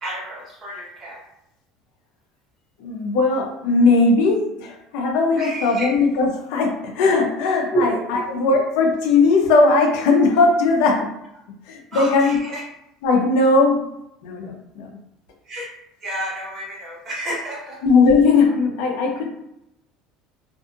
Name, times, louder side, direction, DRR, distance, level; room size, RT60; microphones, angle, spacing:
voice 1, 0.0-1.2 5.4-5.9 7.7-7.8 11.9-12.6 15.4-15.7 16.0-17.8, right 1 dB, 20° right, -7 dB, 1.1 m, -29 dB
voice 2, 2.8-11.1 11.7-12.4 13.0-13.9 14.2-14.9 17.8-19.3, left 3 dB, 70° left, 1 dB, 0.7 m, -18 dB
2.6 x 2.4 x 2.5 m, 0.83 s
cardioid pair, 170°, 0 cm